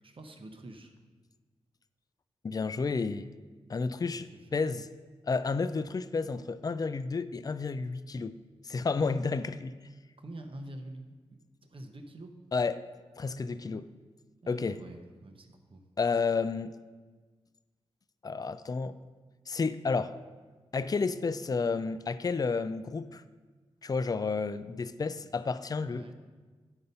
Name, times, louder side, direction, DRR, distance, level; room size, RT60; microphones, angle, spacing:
voice 1, 0.0-0.9 4.1-4.5 10.2-12.4 14.4-15.8 25.9-26.1, right 1 dB, 50° right, 5 dB, 0.9 m, -46 dB
voice 2, 2.4-3.3 3.7-4.9 5.3-8.4 8.6-9.8 12.5-12.8 13.2-13.9 14.5-14.8 16.0-16.7 18.2-19.0 19.5-20.2 20.7-23.2 23.8-26.1, left 4 dB, 35° left, 13 dB, 0.4 m, -31 dB
9.9 x 3.9 x 5.4 m, 1.4 s
supercardioid pair, 40°, 11 cm